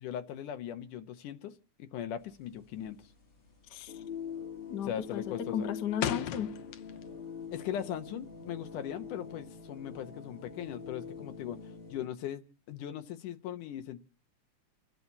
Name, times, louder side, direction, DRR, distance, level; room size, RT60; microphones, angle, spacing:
voice 1, 0.0-1.5 1.8-3.0 4.8-5.7 7.5-11.6 11.9-14.0, left 10 dB, 85° left, 8 dB, 2.8 m, -39 dB
sound 1, 2.2-12.1, left 7 dB, 30° left, 1.1 m, -44 dB
sound 2, 2.8-3.2 3.5-3.8 4.2-4.6 4.9-7.3 7.6-9.0, left 11 dB, 65° left, 1.8 m, -38 dB
voice 2, 3.7-4.0 4.7-6.6, left 8 dB, 50° left, 8 dB, 1.3 m, -35 dB
29.5 x 12.0 x 4.1 m, 0.38 s
omnidirectional pair, 3.5 m